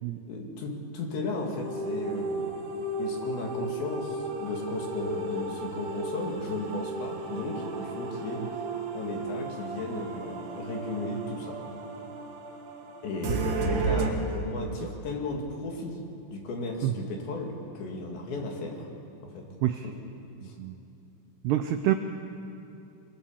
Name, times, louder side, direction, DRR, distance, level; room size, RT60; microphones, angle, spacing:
voice 1, 0.3-2.6 3.0-8.5 8.9-11.6 13.0-16.0 16.3-18.9 19.2-19.5 19.8-20.0 20.4-20.6, left 2 dB, 65° left, 1 dB, 4.6 m, -35 dB
sound 1, 1.3-14.1, right 3 dB, 60° right, 3.8 m, -34 dB
voice 2, 21.4-21.9, right 13 dB, 90° right, 8 dB, 2.3 m, -26 dB
25.5 x 24.5 x 7.4 m, 2.7 s
omnidirectional pair, 5.8 m